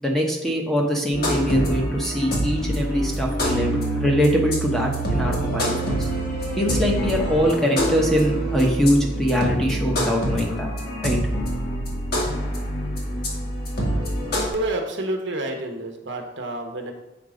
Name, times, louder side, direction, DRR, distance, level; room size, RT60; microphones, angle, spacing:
voice 1, 0.0-5.7 6.0-6.1 6.6-10.7 11.0-11.2, equal, ahead, -1 dB, 1.1 m, -22 dB
sound 1, 1.1-14.5, right 1 dB, 50° left, 2.1 m, -26 dB
voice 2, 14.5-16.9, right 1 dB, 65° right, 2 dB, 1.2 m, -28 dB
8.1 x 4.6 x 5.1 m, 0.95 s
head